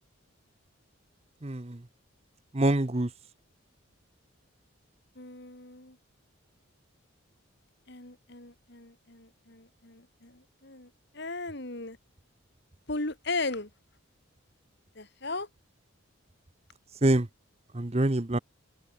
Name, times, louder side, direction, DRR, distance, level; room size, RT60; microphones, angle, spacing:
voice 1, 1.4-1.8 2.5-3.1 17.0-17.3 17.7-18.4, right 1 dB, 30° right, 0.9 m, -25 dB
voice 2, 5.2-6.0 7.9-12.0 12.9-13.7 15.0-15.5, left 3 dB, 55° left, 2.5 m, -37 dB
head